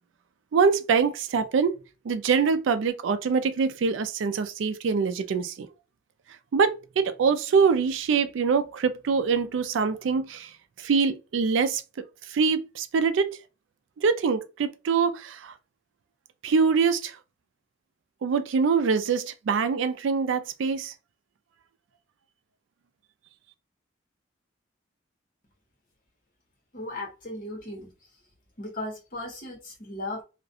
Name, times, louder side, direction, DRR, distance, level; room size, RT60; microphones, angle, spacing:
voice 1, 0.5-1.8 2.1-5.7 6.5-10.5 10.8-11.8 12.3-13.3 14.0-15.5 16.4-17.2 18.2-20.9, right 5 dB, 75° right, 0.3 m, -24 dB
voice 2, 26.7-27.9 28.6-30.2, left 1 dB, 45° left, 0.9 m, -36 dB
2.4 x 2.1 x 2.6 m
head